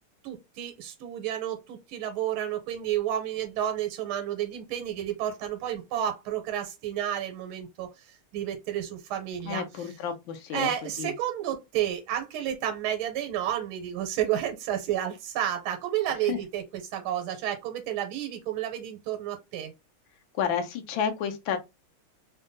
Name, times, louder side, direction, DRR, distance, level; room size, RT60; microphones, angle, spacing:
voice 1, 0.2-7.9 8.3-9.6 10.5-16.6 16.9-19.7, right 11 dB, 90° right, 1.5 m, -31 dB
voice 2, 9.4-10.7 11.0-11.1 16.3-16.4 20.3-21.6, left 7 dB, 75° left, 1.3 m, -30 dB
3.6 x 2.2 x 2.5 m
omnidirectional pair, 2.3 m